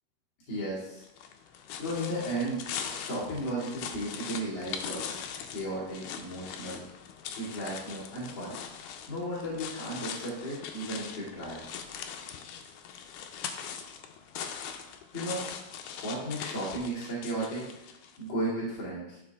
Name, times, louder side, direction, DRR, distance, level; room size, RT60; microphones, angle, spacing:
voice 1, 0.5-1.0 1.8-2.6 2.9-5.1 5.5-6.8 7.4-8.6 9.1-11.6 15.1-15.5 16.0-17.6 18.2-19.2, right 1 dB, 40° left, -8 dB, 2.8 m, -34 dB
sound 1, 1.0-18.2, left 7 dB, 75° left, 2.1 m, -41 dB
12.0 x 5.0 x 3.5 m, 0.89 s
omnidirectional pair, 3.9 m